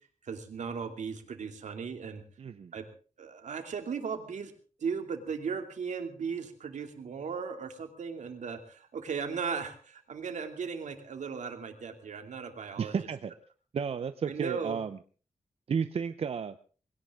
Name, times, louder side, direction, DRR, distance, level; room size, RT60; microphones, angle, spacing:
voice 1, 0.2-2.2 2.7-2.9 3.2-4.5 4.8-12.9 14.3-14.8, right 6 dB, 85° right, 6 dB, 2.7 m, -37 dB
voice 2, 2.4-2.7 12.8-13.3 13.7-15.0 15.7-16.6, right 6 dB, 55° right, 11 dB, 0.7 m, -32 dB
21.0 x 17.5 x 3.7 m, 0.39 s
wide cardioid pair, 170°, 12 cm